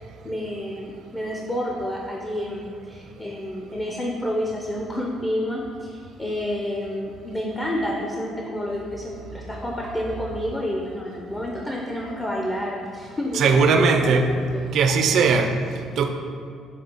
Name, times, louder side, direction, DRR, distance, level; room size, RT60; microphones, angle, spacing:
voice 1, 0.2-14.2 14.5-15.0, left 1 dB, 20° left, -2 dB, 0.5 m, -29 dB
voice 2, 13.3-14.3 14.7-16.1, right 5 dB, 65° right, 5 dB, 0.4 m, -19 dB
6.6 x 2.4 x 2.9 m, 2.2 s
supercardioid pair, 70°, 0 cm